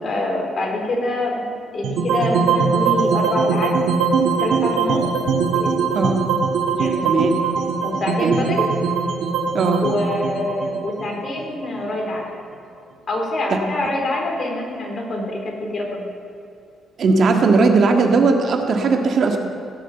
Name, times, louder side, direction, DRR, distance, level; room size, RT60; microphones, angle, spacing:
voice 1, 0.0-1.4 1.7-4.1 4.4-5.0 5.5-6.0 6.7-7.0 7.8-8.6 9.8-12.3 13.1-16.1, left 1 dB, 45° left, 0 dB, 3.7 m, -25 dB
sound 1, 1.8-12.0, right 5 dB, 80° right, 1.4 m, -21 dB
voice 2, 7.0-7.3 8.2-8.3 9.5-9.8 17.0-19.4, right 4 dB, 55° right, 4 dB, 1.7 m, -17 dB
17.0 x 6.6 x 8.9 m, 2.6 s
cardioid pair, 90°, 0 cm